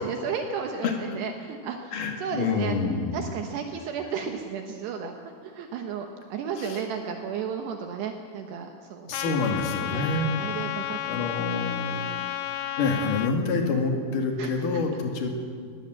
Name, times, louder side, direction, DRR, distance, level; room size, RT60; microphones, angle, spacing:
voice 1, 0.0-1.9 2.2-2.7 3.1-5.1 5.5-9.6 9.9-10.1 10.4-11.3 11.9-12.2 14.4-14.8, right 6 dB, 70° right, 4 dB, 3.0 m, -33 dB
voice 2, 1.9-3.3 6.6-6.8 9.1-10.3 10.7-11.9 12.8-15.3, left 3 dB, 50° left, 2 dB, 3.4 m, -27 dB
Trumpet, 9.1-13.3, left 12 dB, 85° left, 3.2 m, -32 dB
21.0 x 17.5 x 7.7 m, 2.1 s
omnidirectional pair, 5.3 m